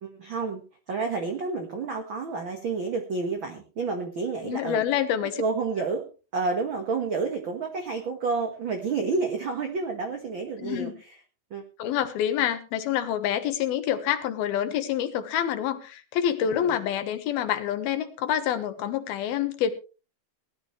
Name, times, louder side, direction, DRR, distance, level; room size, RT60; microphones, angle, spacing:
voice 1, 0.0-4.8 5.4-11.2 11.5-11.6 16.4-16.8, right 4 dB, 50° right, 5 dB, 1.5 m, -30 dB
voice 2, 4.4-5.4 10.6-10.9 11.8-19.7, left 10 dB, 80° left, 10 dB, 3.1 m, -27 dB
19.0 x 12.5 x 3.2 m, 0.33 s
omnidirectional pair, 4.3 m